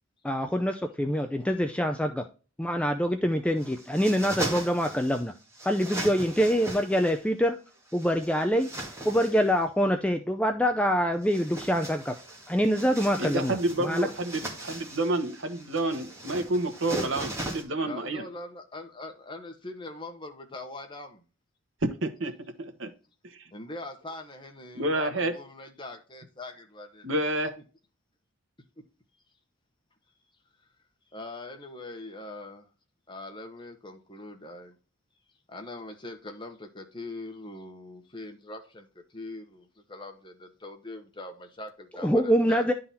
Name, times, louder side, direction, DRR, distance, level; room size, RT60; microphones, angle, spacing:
voice 1, 0.2-2.2 2.6-5.3 5.6-7.6 7.9-8.7 9.1-12.1 12.5-14.1 42.0-42.7, equal, 5° left, 0.5 m, -25 dB
sound 1, 3.6-5.2 5.5-7.2 7.9-9.5 11.1-17.6, right 2 dB, 15° right, 2.0 m, -38 dB
voice 2, 13.2-18.2 22.0-22.3 22.6-22.9 24.7-25.4 27.0-27.5, right 1 dB, 65° right, 1.3 m, -29 dB
voice 3, 17.8-21.2 23.5-27.1 31.1-32.7 33.1-34.7 35.5-42.7, left 2 dB, 25° left, 1.2 m, -42 dB
11.0 x 3.9 x 4.2 m
head